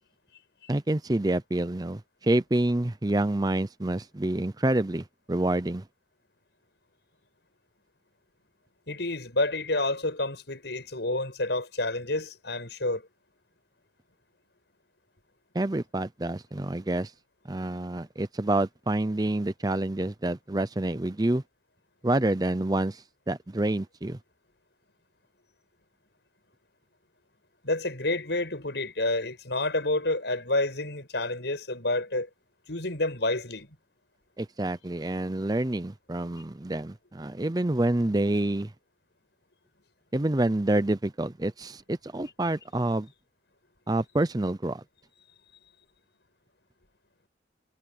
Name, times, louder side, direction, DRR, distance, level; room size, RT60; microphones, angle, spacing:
voice 1, 0.7-5.8 15.5-17.1 17.5-21.4 22.0-24.2 34.4-38.7 40.1-43.1 43.9-44.8, right 1 dB, 20° right, 0.6 m, -27 dB
voice 2, 8.9-13.0 27.6-32.3 32.7-33.7, left 2 dB, 70° left, 5.9 m, -29 dB
head